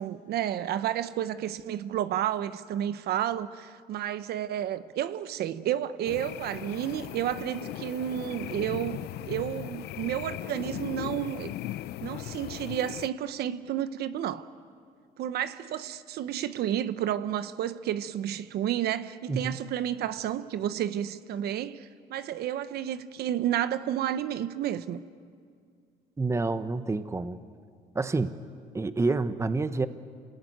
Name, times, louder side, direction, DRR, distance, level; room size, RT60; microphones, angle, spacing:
voice 1, 0.0-11.5 12.0-14.5 15.2-25.0, right 11 dB, 70° right, 1.0 m, -31 dB
sound 1, 6.0-13.1, left 14 dB, 75° left, 0.6 m, -38 dB
voice 2, 19.3-19.6 26.2-27.4 27.9-28.4 28.7-29.9, right 3 dB, 15° right, 1.0 m, -28 dB
27.5 x 20.0 x 9.4 m
cardioid pair, 110°, 17 cm